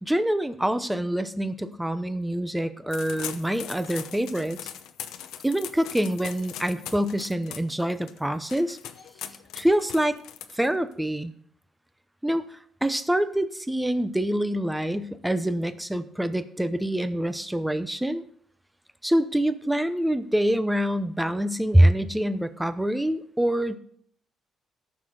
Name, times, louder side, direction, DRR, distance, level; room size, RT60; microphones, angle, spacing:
voice 1, 0.0-4.7 5.4-8.8 9.5-10.2 10.5-11.3 12.2-18.2 19.0-23.8, right 1 dB, 5° right, 11 dB, 0.7 m, -25 dB
sound 1, 2.9-10.9, left 10 dB, 90° left, 0.7 m, -40 dB
13.5 x 6.0 x 4.9 m, 0.63 s
cardioid pair, 90°, 0 cm